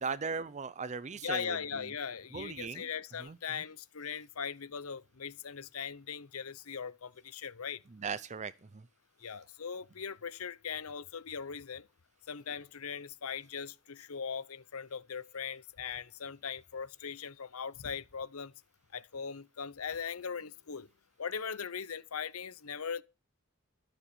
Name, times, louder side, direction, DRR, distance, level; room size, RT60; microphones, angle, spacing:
voice 1, 0.0-1.6 2.3-2.8 3.3-3.4 8.0-8.5, right 5 dB, 35° right, 0.5 m, -37 dB
voice 2, 1.2-7.8 9.2-11.9 12.3-18.5 18.9-20.9 21.2-23.0, left 6 dB, 80° left, 0.8 m, -40 dB
13.0 x 7.3 x 7.0 m
head